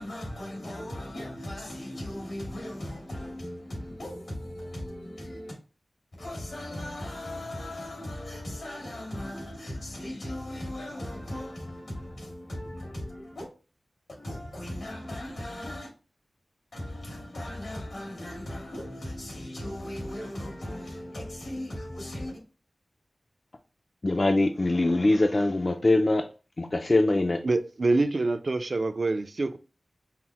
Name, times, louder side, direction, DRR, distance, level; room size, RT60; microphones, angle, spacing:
voice 1, 0.0-5.6 6.2-13.5 14.2-15.9 16.7-22.3, left 1 dB, 85° left, 2.2 m, -37 dB
voice 2, 24.0-26.2 26.6-27.4, left 2 dB, 40° left, 0.3 m, -23 dB
voice 3, 27.4-29.6, right 3 dB, 55° right, 0.3 m, -26 dB
5.6 x 2.0 x 2.9 m
wide cardioid pair, 80°, 0 cm